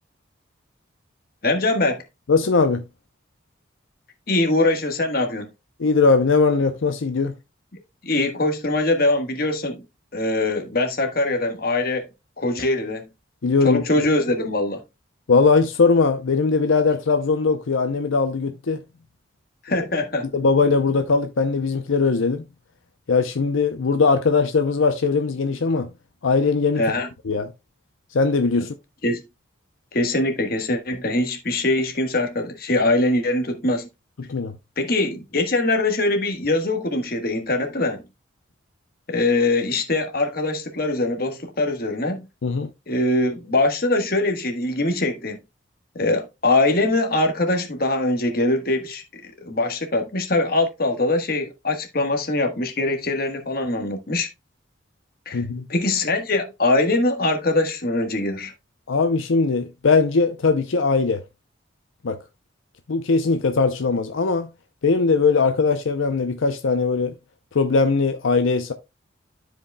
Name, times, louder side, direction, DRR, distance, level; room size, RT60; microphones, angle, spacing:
voice 1, 1.4-2.0 4.3-5.5 8.0-9.8 10.1-12.1 12.4-13.1 13.6-14.8 19.6-20.3 26.8-27.1 29.0-29.2 29.9-33.9 34.8-38.0 39.1-42.2 42.9-45.4 45.9-54.3 55.3-55.4 55.7-58.5, left 2 dB, 50° left, 1.4 m, -22 dB
voice 2, 2.3-2.8 5.8-7.3 13.4-14.1 15.3-18.8 19.7-19.9 20.3-22.5 23.1-25.9 26.2-26.8 27.2-27.5 28.1-28.7 34.2-34.5 42.4-42.7 55.3-55.7 58.9-61.2 62.0-62.2 62.9-64.5 64.8-67.1 67.5-68.7, left 4 dB, 85° left, 0.6 m, -20 dB
13.0 x 5.1 x 2.2 m
head